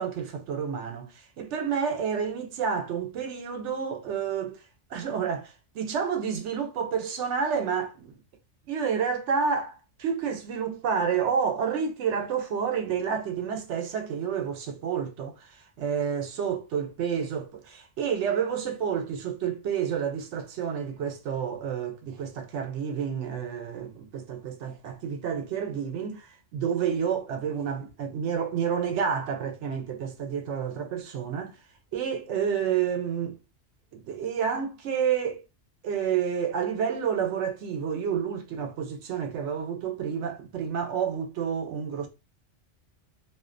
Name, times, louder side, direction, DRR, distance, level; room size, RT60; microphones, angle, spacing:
voice 1, 0.0-4.6 4.9-8.1 8.7-17.4 18.0-31.6 31.9-33.4 33.9-35.4 35.8-42.1, right 7 dB, 80° right, 0.9 m, -29 dB
2.5 x 2.1 x 2.4 m
omnidirectional pair, 1.2 m